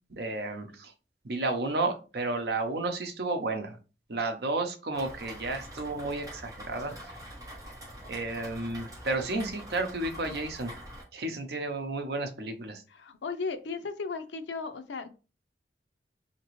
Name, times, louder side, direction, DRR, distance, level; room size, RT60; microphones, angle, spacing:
voice 1, 0.1-0.9 1.2-3.8 4.1-7.2 8.1-10.7 11.1-12.8, right 2 dB, 60° right, 5 dB, 0.7 m, -32 dB
Rain, 4.9-11.0, equal, 20° right, 1.0 m, -45 dB
voice 2, 6.7-7.1 12.9-15.1, left 4 dB, 80° left, 9 dB, 0.5 m, -36 dB
3.9 x 2.9 x 3.0 m, 0.33 s
head